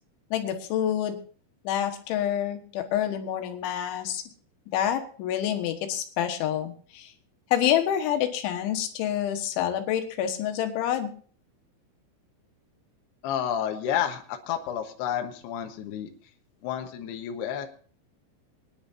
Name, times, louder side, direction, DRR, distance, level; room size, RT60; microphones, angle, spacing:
voice 1, 0.3-1.2 1.7-4.2 4.7-7.1 7.5-11.1, left 10 dB, 90° left, 5 dB, 3.8 m, -27 dB
voice 2, 13.2-16.1 16.6-17.7, left 9 dB, 70° left, 4 dB, 3.1 m, -30 dB
25.0 x 10.5 x 2.8 m, 0.44 s
omnidirectional pair, 5.3 m